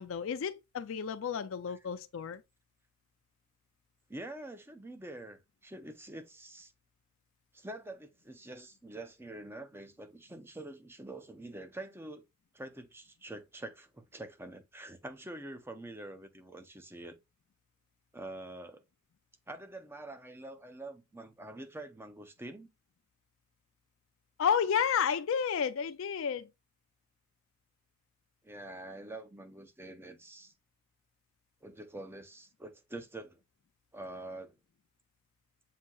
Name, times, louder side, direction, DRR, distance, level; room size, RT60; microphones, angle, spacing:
voice 1, 0.0-2.4 24.4-26.5, left 7 dB, 65° left, 0.4 m, -31 dB
voice 2, 4.1-6.7 7.5-12.2 12.5-17.1 18.1-18.8 19.5-22.7 28.4-30.5 31.6-33.4 33.9-34.6, right 1 dB, 10° right, 0.5 m, -46 dB
7.2 x 2.7 x 2.2 m
head